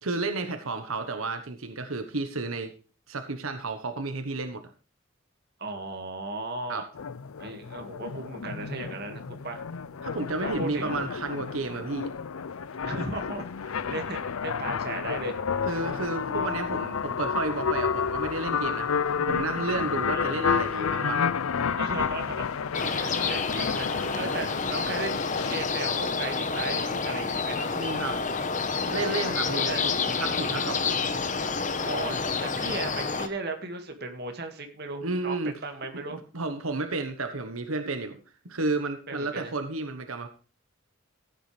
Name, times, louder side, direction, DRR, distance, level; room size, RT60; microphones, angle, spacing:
voice 1, 0.0-2.7 3.1-4.6 6.7-6.8 10.0-12.1 15.7-21.3 27.7-28.2 28.9-31.0 35.0-35.5 36.1-38.2 38.4-40.3, right 3 dB, 90° right, 8 dB, 1.2 m, -32 dB
voice 2, 5.6-6.8 7.4-9.6 10.4-11.1 12.8-15.4 16.4-16.5 20.1-20.4 21.7-25.2 25.5-27.7 29.7-29.9 31.8-36.2 39.1-39.5, right 3 dB, 50° right, 5 dB, 2.0 m, -36 dB
sound 1, 6.9-25.7, left 6 dB, 90° left, 0.6 m, -31 dB
sound 2, 22.7-33.3, left 4 dB, 35° left, 1.1 m, -29 dB
15.0 x 9.1 x 3.3 m, 0.35 s
head